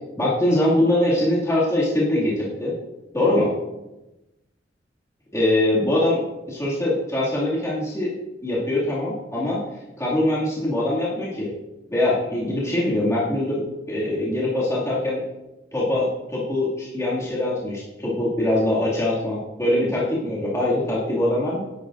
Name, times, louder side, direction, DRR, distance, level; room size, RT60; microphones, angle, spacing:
voice 1, 0.2-2.7 3.1-3.5 5.3-6.2 6.5-8.1 8.4-9.6 10.0-11.5 11.9-15.2 15.7-21.6, left 1 dB, 15° left, -7 dB, 2.2 m, -22 dB
11.0 x 9.7 x 2.5 m, 1.0 s
head